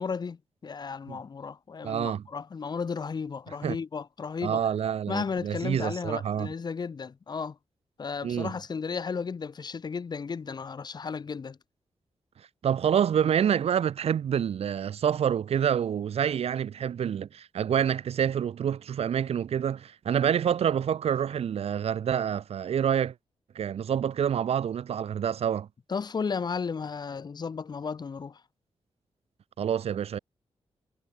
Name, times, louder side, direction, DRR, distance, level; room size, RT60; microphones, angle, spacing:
voice 1, 0.0-4.7 5.1-7.6 8.0-11.6 25.9-28.4, left 5 dB, 45° left, 5.9 m, -34 dB
voice 2, 1.8-2.2 3.6-3.8 4.4-6.5 8.2-8.5 12.6-23.1 23.5-25.7 29.6-30.2, right 8 dB, 80° right, 3.2 m, -27 dB
wide cardioid pair, 150°, 10 cm